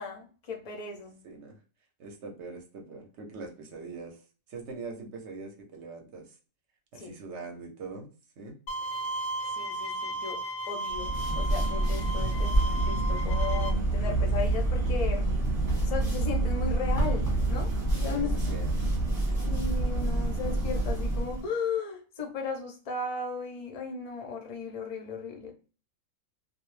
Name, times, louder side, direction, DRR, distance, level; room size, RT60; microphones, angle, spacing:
voice 1, 0.0-1.1 6.9-7.1 9.6-10.4 10.7-15.3 15.9-18.5 19.5-25.5, left 5 dB, 50° left, 2 dB, 0.4 m, -36 dB
voice 2, 1.2-1.5 2.0-4.2 4.5-6.3 6.9-8.1 8.4-8.6 12.4-12.6 18.0-18.9, right 4 dB, 65° right, 3 dB, 0.8 m, -42 dB
Bowed string instrument, 8.7-13.7, right 1 dB, 90° left, 1.0 m, -35 dB
sound 1, 10.9-21.4, right 2 dB, 15° right, 0.9 m, -27 dB
2.3 x 2.0 x 3.0 m, 0.35 s
omnidirectional pair, 1.4 m